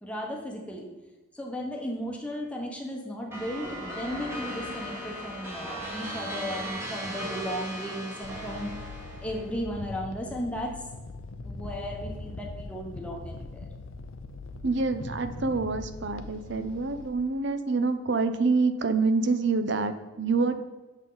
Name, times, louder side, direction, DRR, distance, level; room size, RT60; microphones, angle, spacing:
voice 1, 0.0-0.9 1.3-8.7 9.2-10.8 11.4-13.6, equal, 5° left, -1 dB, 1.1 m, -35 dB
sound 1, 3.3-9.5, equal, 10° right, 1.3 m, -37 dB
sound 2, 8.2-17.1, left 3 dB, 75° left, 0.7 m, -41 dB
voice 2, 14.6-20.6, right 4 dB, 55° right, 9 dB, 0.6 m, -26 dB
8.2 x 7.0 x 3.9 m, 1.2 s
head